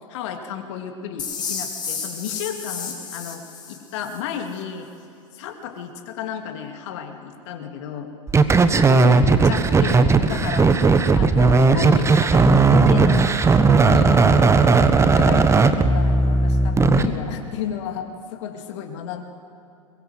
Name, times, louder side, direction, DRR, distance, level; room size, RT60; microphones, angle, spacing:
voice 1, 0.1-4.9 5.3-8.1 8.6-10.8 11.1-13.4 13.9-14.4 14.7-19.2, left 8 dB, 60° left, 5 dB, 2.7 m, -32 dB
sound 1, 1.2-4.2, left 5 dB, 25° left, 4.8 m, -32 dB
sound 2, 8.3-17.1, right 4 dB, 15° right, 1.2 m, -16 dB
22.5 x 22.0 x 7.9 m, 2.5 s
hypercardioid pair, 95°, 17 cm